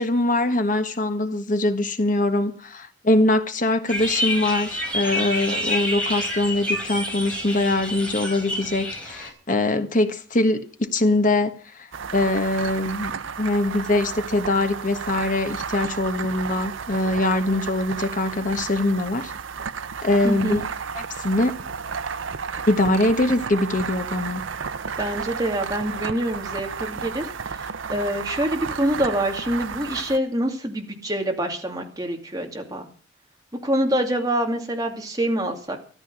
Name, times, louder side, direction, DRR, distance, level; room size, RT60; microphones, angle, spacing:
voice 1, 0.0-11.9 12.1-13.1 13.4-19.3 20.0-20.6 20.9-21.5 22.7-24.4, left 2 dB, 45° left, 1.4 m, -23 dB
sound 1, 3.9-9.3, left 1 dB, 5° left, 4.9 m, -28 dB
sound 2, 11.9-30.2, right 6 dB, 85° right, 0.7 m, -33 dB
voice 2, 20.2-20.6 25.0-32.9 33.6-35.8, right 1 dB, 20° right, 2.5 m, -26 dB
14.0 x 12.5 x 6.2 m
head